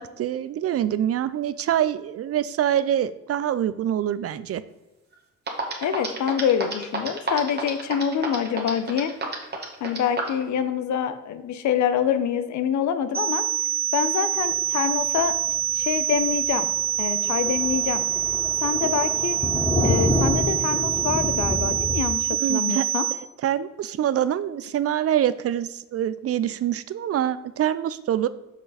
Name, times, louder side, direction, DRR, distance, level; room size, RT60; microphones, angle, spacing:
voice 1, 0.0-4.6 22.4-22.8 23.4-28.3, right 10 dB, 50° right, 15 dB, 0.4 m, -25 dB
sound 1, 5.1-5.2 5.5-10.4, right 3 dB, 35° right, 1.6 m, -29 dB
voice 2, 5.8-9.1 9.8-13.4 13.9-15.4 15.7-16.7 17.0-18.0 18.6-19.4 19.8-23.0, left 8 dB, 70° left, 10 dB, 0.8 m, -26 dB
sound 2, 13.1-23.1, right 11 dB, 20° right, 0.7 m, -25 dB
Thunder, 15.0-15.2 15.6-15.7 16.0-16.1 16.4-16.5 16.8-22.0, left 1 dB, 20° left, 1.2 m, -27 dB
6.1 x 5.4 x 4.1 m, 1.0 s
cardioid pair, 90°, 30 cm